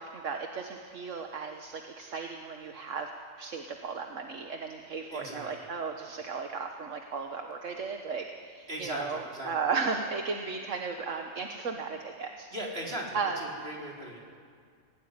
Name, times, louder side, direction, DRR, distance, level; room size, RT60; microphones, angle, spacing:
voice 1, 0.0-3.1 3.4-12.5 13.1-13.4, right 5 dB, 75° right, 4 dB, 1.7 m, -35 dB
voice 2, 5.1-5.5 8.7-9.5 12.5-14.2, right 1 dB, 50° right, -2 dB, 4.9 m, -38 dB
26.0 x 17.5 x 9.7 m, 2.1 s
omnidirectional pair, 1.3 m